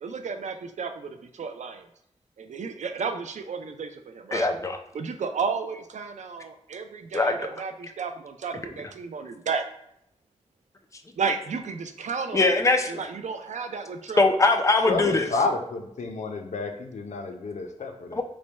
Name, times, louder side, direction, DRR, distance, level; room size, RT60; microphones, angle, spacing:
voice 1, 0.0-1.9 2.4-4.5 4.9-9.6 11.2-14.4, right 5 dB, 90° right, 7 dB, 0.4 m, -33 dB
voice 2, 4.3-4.8 7.1-7.6 12.3-13.1 14.2-15.3 18.1-18.2, left 3 dB, 25° left, 6 dB, 0.4 m, -22 dB
voice 3, 14.8-18.2, left 3 dB, 80° left, 4 dB, 0.5 m, -30 dB
3.2 x 2.1 x 4.0 m, 0.76 s
wide cardioid pair, 100°, 12 cm